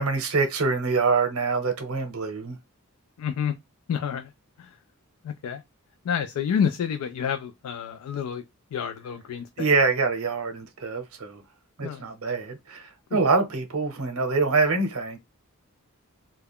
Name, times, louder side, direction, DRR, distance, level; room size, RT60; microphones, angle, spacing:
voice 1, 0.0-2.6 9.6-11.4 11.8-15.2, right 4 dB, 75° right, 0.7 m, -25 dB
voice 2, 3.2-3.6 3.9-4.3 4.6-4.7 5.2-5.6 6.0-8.4 8.7-9.7 11.8-12.0 13.1-13.2, left 7 dB, 80° left, 0.3 m, -29 dB
2.3 x 2.1 x 3.4 m
head